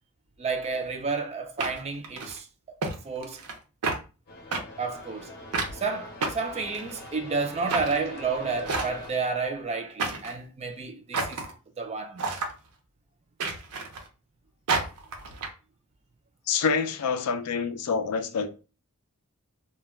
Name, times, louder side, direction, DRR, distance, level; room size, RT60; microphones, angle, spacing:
voice 1, 0.4-2.5 3.0-3.4 4.8-5.3 5.7-11.4 11.8-12.2, right 4 dB, 30° right, 0.3 m, -31 dB
sound 1, 0.6-0.8 1.6-2.4 2.8-2.9 3.2-3.6 3.8-4.0 4.5-4.6 5.5-5.7 6.2-7.1 7.7-7.9 8.6-9.2 10.0-10.4 11.1-11.5 12.2-12.5 13.4-14.1 14.7-15.5, right 4 dB, 90° right, 0.6 m, -30 dB
sound 2, 4.3-9.1, left 2 dB, 45° left, 0.6 m, -44 dB
voice 2, 16.5-18.5, left 5 dB, 80° left, 0.4 m, -27 dB
2.2 x 2.2 x 3.4 m
head